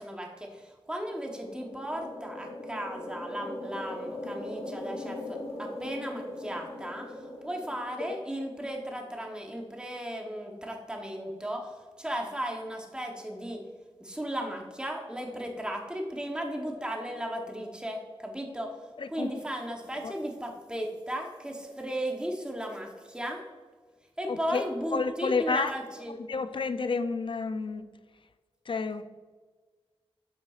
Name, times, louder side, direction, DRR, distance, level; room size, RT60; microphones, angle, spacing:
voice 1, 0.0-7.1 7.4-13.6 14.0-18.7 19.1-23.4 24.2-26.2, equal, 10° right, 1 dB, 0.9 m, -36 dB
sound 1, 1.0-8.7, left 1 dB, 80° left, 1.0 m, -40 dB
voice 2, 19.0-19.3 20.0-20.1 24.3-24.6 24.9-25.7 26.2-27.9 28.7-29.0, left 4 dB, 55° left, 11 dB, 0.4 m, -30 dB
7.9 x 5.6 x 2.4 m, 1.4 s
wide cardioid pair, 85°, 10 cm